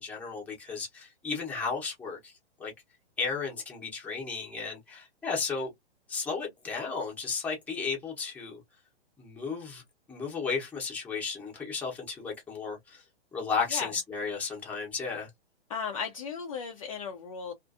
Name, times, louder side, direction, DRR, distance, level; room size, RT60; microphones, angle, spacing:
voice 1, 0.0-2.3 2.6-2.7 3.2-5.7 6.1-8.6 9.2-9.8 10.1-13.0 13.3-15.3, left 5 dB, 5° left, 0.7 m, -34 dB
voice 2, 15.7-17.5, left 6 dB, 35° left, 0.4 m, -35 dB
2.5 x 2.4 x 2.4 m
hypercardioid pair, 150°, 32 cm